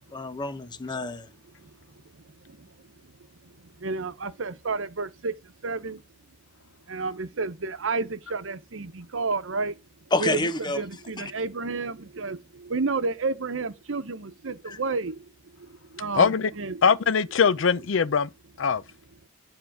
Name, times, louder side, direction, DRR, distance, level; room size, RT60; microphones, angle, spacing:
voice 1, 0.1-1.3 10.1-10.8 11.2-11.3 14.7-14.8, left 2 dB, 25° left, 0.7 m, -28 dB
voice 2, 3.8-5.3 5.6-6.0 6.9-9.7 10.2-12.4 12.7-15.1 16.0-16.8, right 4 dB, 85° right, 0.9 m, -30 dB
voice 3, 16.2-16.5 16.8-18.3 18.6-18.8, left 6 dB, 75° left, 0.5 m, -21 dB
9.4 x 3.7 x 4.9 m
head